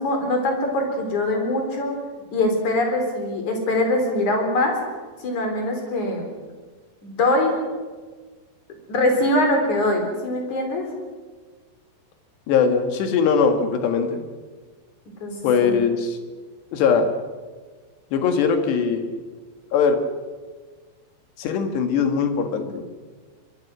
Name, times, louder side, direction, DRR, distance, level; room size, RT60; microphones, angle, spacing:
voice 1, 0.0-1.9 2.3-4.7 5.2-6.2 7.0-7.6 8.9-10.8 15.2-15.8, left 1 dB, 40° left, 3 dB, 4.9 m, -22 dB
voice 2, 12.5-14.2 15.4-16.2 16.7-17.1 18.1-19.1 19.7-20.0 21.4-22.9, left 6 dB, 65° left, 7 dB, 3.6 m, -21 dB
24.0 x 23.0 x 6.2 m, 1.4 s
omnidirectional pair, 5.8 m